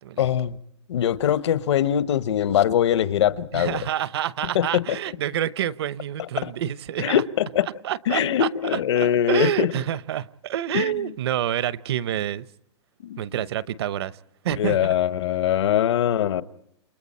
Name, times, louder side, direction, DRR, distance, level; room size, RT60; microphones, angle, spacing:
voice 1, 0.2-0.6 0.9-3.8 4.5-4.8 6.4-6.5 7.0-7.7 8.1-9.7 10.7-11.1 13.0-13.2 14.6-16.4, left 10 dB, 70° left, 1.1 m, -22 dB
voice 2, 3.5-7.2 7.8-12.5 13.2-14.2 14.4-14.9, right 11 dB, 60° right, 0.8 m, -28 dB
29.0 x 28.5 x 4.3 m
supercardioid pair, 175°, 15 cm